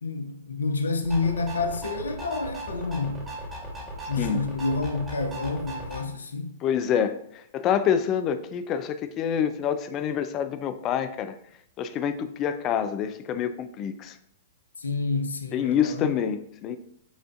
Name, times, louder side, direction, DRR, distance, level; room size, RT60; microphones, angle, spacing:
voice 1, 0.0-3.3 4.1-6.5 14.8-16.1, left 3 dB, 85° left, 0.5 m, -29 dB
sound 1, 1.0-6.0, right 1 dB, 10° right, 1.4 m, -37 dB
voice 2, 6.6-7.2 7.5-11.3 11.8-14.1 15.5-16.8, left 8 dB, 35° left, 0.4 m, -27 dB
7.0 x 2.5 x 2.5 m
hypercardioid pair, 115°, 0 cm